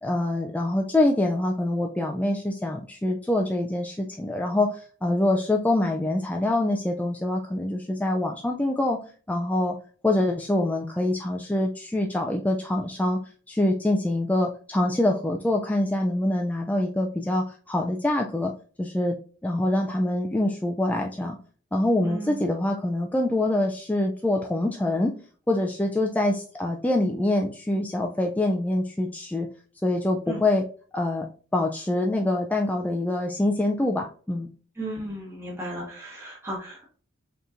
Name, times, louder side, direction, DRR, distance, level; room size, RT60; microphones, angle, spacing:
voice 1, 0.0-9.0 9.3-9.8 10.0-13.2 13.5-18.5 18.8-19.2 19.4-21.4 21.7-25.2 25.5-29.5 29.8-30.6 30.9-31.3 31.5-34.5, left 1 dB, 10° left, 1 dB, 0.3 m, -25 dB
voice 2, 22.0-22.4 30.3-30.4 34.7-36.8, right 1 dB, 15° right, -4 dB, 1.3 m, -35 dB
5.4 x 3.0 x 2.5 m, 0.41 s
head